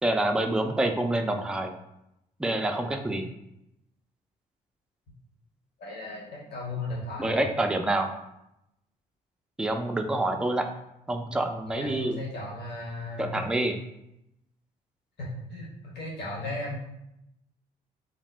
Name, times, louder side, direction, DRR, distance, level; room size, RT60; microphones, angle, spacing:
voice 1, 0.0-1.7 2.4-3.3 7.2-8.1 9.6-10.7 11.1-12.2 13.2-13.8, right 1 dB, 5° right, 5 dB, 0.3 m, -27 dB
voice 2, 5.8-7.5 11.7-13.4 15.2-16.8, left 2 dB, 60° left, -4 dB, 0.9 m, -36 dB
2.5 x 2.0 x 3.2 m, 0.84 s
hypercardioid pair, 45°, 20 cm